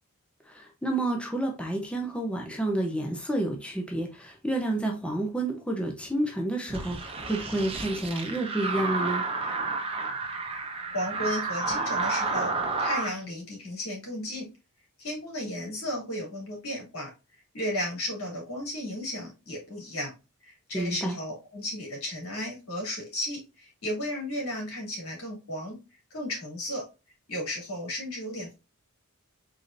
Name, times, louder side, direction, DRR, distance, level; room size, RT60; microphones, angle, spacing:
voice 1, 0.5-9.2 20.7-21.2, right 1 dB, 5° left, 0.7 m, -30 dB
sound 1, 6.7-13.1, right 3 dB, 25° right, 0.9 m, -31 dB
voice 2, 10.9-12.5 12.8-14.5 15.0-17.1 17.5-20.1 20.4-25.8 26.1-26.8 27.3-28.5, left 1 dB, 75° left, 2.8 m, -34 dB
4.9 x 4.0 x 2.5 m
head